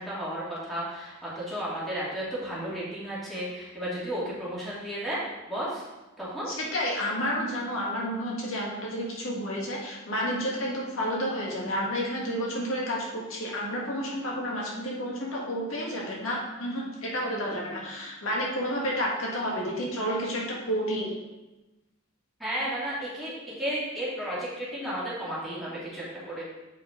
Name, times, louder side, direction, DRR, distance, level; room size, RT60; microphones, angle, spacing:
voice 1, 0.0-5.2 5.5-5.8 6.2-6.5 17.5-17.7 22.4-26.5, right 1 dB, ahead, -9 dB, 2.4 m, -33 dB
voice 2, 6.5-21.1, equal, 85° left, -3 dB, 1.8 m, -30 dB
7.7 x 5.5 x 3.9 m, 1.1 s
head